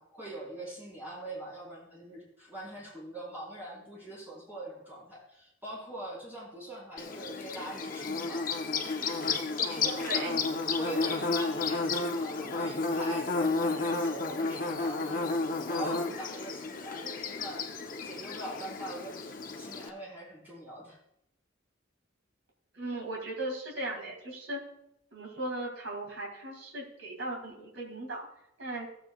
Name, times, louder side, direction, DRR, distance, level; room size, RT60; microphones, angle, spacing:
voice 1, 0.0-8.4 8.8-10.3 10.7-15.2 15.7-17.7 18.0-21.0, right 1 dB, 10° right, -7 dB, 4.2 m, -43 dB
Bird / Buzz, 7.0-19.9, left 3 dB, 45° left, 0.7 m, -32 dB
voice 2, 10.0-10.4 22.7-24.6 25.1-28.2 28.6-28.9, right 2 dB, 70° right, -1 dB, 2.2 m, -37 dB
15.0 x 8.1 x 2.4 m, 0.78 s
head